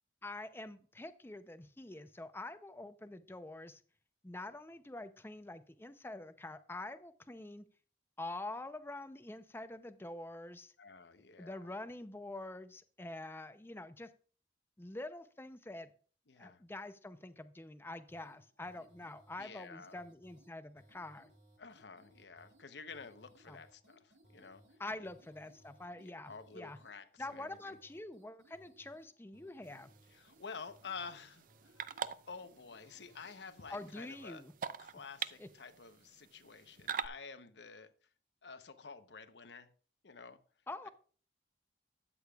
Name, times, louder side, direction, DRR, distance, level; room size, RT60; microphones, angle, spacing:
voice 1, 0.2-3.8 4.2-7.6 8.2-10.7 11.4-14.1 14.8-15.9 16.4-21.3 23.5-23.6 24.8-26.8 27.2-29.9 33.7-34.5 35.4-35.5 40.7-40.9, left 2 dB, 15° left, 11 dB, 0.6 m, -46 dB
voice 2, 10.8-11.7 16.3-16.6 19.4-20.0 21.6-25.1 25.9-27.8 30.1-34.4 34.8-37.9 38.4-39.7 40.0-40.4 40.8-40.9, left 5 dB, 75° left, 10 dB, 0.9 m, -50 dB
sound 1, 18.1-34.3, right 1 dB, 80° right, 2.5 m, -66 dB
sound 2, 29.6-37.1, right 7 dB, 50° right, 0.4 m, -45 dB
12.5 x 8.5 x 2.4 m, 0.40 s
head